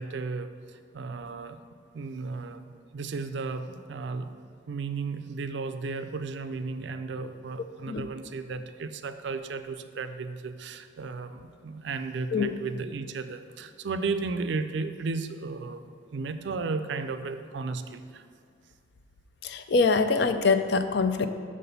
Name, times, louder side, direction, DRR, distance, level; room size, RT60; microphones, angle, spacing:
voice 1, 0.0-1.6 1.9-4.3 4.7-15.8 16.1-18.2, right 4 dB, 65° right, 10 dB, 0.4 m, -34 dB
voice 2, 19.4-21.3, left 4 dB, 60° left, 9 dB, 0.4 m, -24 dB
6.3 x 5.9 x 5.4 m, 2.1 s
head